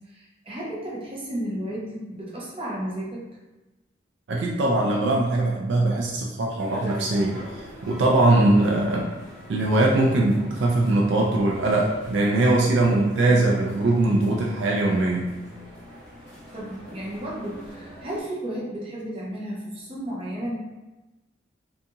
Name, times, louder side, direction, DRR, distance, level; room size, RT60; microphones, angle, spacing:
voice 1, 0.1-3.3 16.5-20.6, right 1 dB, 30° right, -6 dB, 0.6 m, -33 dB
voice 2, 4.3-9.1 9.5-15.3, right 2 dB, 65° right, -2 dB, 0.3 m, -21 dB
sound 1, 6.6-18.2, equal, 15° left, 0.9 m, -43 dB
2.6 x 2.3 x 2.7 m, 1.1 s
head